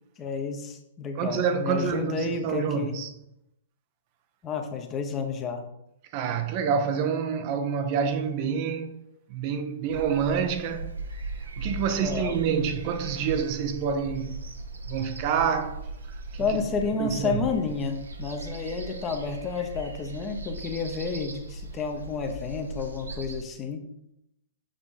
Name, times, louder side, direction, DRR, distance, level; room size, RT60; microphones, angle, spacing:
voice 1, 0.2-3.0 4.4-5.7 12.0-12.6 16.4-23.9, left 5 dB, 25° left, 0.9 m, -31 dB
voice 2, 1.2-3.1 6.1-9.0 9.3-11.0 11.6-14.4 14.9-16.4 17.0-17.4, right 7 dB, 40° right, 0.6 m, -28 dB
sound 1, 9.9-23.4, right 3 dB, 85° right, 0.9 m, -38 dB
6.6 x 3.9 x 3.7 m
hypercardioid pair, 120°, 0 cm